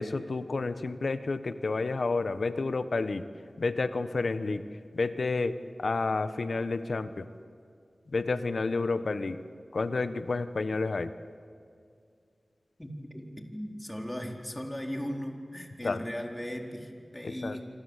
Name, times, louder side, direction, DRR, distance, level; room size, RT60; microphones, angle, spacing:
voice 1, 0.0-3.3 3.6-4.6 4.9-7.3 8.1-9.4 9.7-11.1 15.8-16.0 17.2-17.6, left 3 dB, 75° left, 11 dB, 1.3 m, -30 dB
voice 2, 12.8-17.7, equal, 15° left, 2 dB, 4.2 m, -37 dB
27.0 x 26.5 x 8.3 m, 2.3 s
cardioid pair, 45°, 0 cm